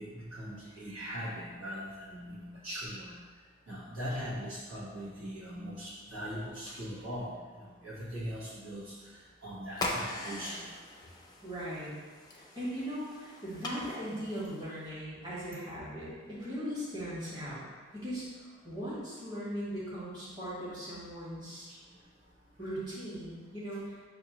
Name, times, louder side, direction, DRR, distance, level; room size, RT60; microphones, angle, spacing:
voice 1, 0.0-3.1 3.7-10.6 21.7-21.8 22.7-22.8, equal, 80° right, -7 dB, 1.2 m, -40 dB
sound 1, 9.7-14.9, left 2 dB, 20° left, 0.4 m, -41 dB
voice 2, 11.4-11.9 12.3-17.6 17.9-21.7 22.6-24.1, equal, 20° right, -10 dB, 1.3 m, -39 dB
6.3 x 2.6 x 2.8 m, 1.4 s
head